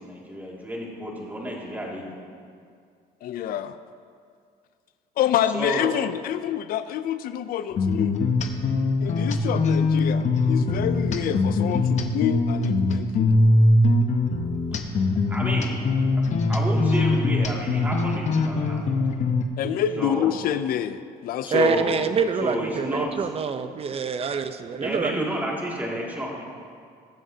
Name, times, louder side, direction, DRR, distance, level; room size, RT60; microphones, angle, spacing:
voice 1, 0.0-2.1 5.5-5.9 14.7-15.7 16.0-16.2 16.5-18.8 19.1-19.3 20.0-20.3 21.4-22.0 22.4-23.1 24.8-26.4, equal, 10° right, -3 dB, 2.3 m, -31 dB
voice 2, 3.2-3.8 5.2-8.3 9.0-13.4 19.6-21.7, left 10 dB, 60° left, 11 dB, 0.5 m, -27 dB
sound 1, 7.8-19.5, left 2 dB, 45° left, 0.9 m, -22 dB
voice 3, 21.5-25.3, right 6 dB, 35° right, 9 dB, 0.7 m, -26 dB
21.0 x 7.4 x 2.8 m, 2.3 s
cardioid pair, 110°, 17 cm